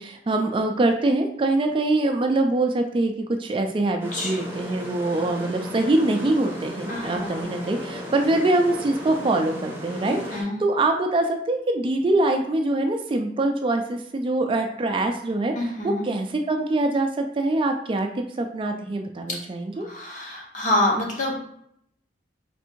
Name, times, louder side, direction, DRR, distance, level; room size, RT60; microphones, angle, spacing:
voice 1, 0.0-3.1 3.4-15.5 15.8-18.1 18.4-19.9, right 2 dB, 30° right, 4 dB, 0.3 m, -24 dB
voice 2, 4.0-4.4 6.9-7.5 10.0-10.6 15.5-16.1 19.8-21.5, left 1 dB, 45° left, -2 dB, 1.0 m, -27 dB
sound 1, 4.0-10.4, equal, 10° right, 0.7 m, -36 dB
3.4 x 2.6 x 4.4 m, 0.70 s
head